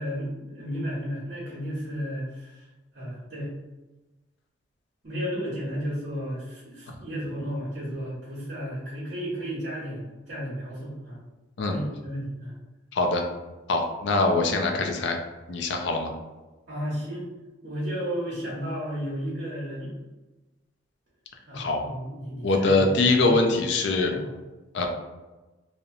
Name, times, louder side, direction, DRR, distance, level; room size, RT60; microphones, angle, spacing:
voice 1, 0.0-2.6 2.9-3.5 5.0-11.2 11.6-12.5 16.7-17.3 17.6-19.9 21.5-23.3 24.1-24.3, equal, 60° right, -7 dB, 0.8 m, -33 dB
voice 2, 12.9-13.2 13.7-15.2 15.5-16.1 21.5-21.8 22.4-24.1 24.7-24.9, left 3 dB, 60° left, 3 dB, 0.4 m, -23 dB
2.8 x 2.0 x 2.6 m, 1.1 s
head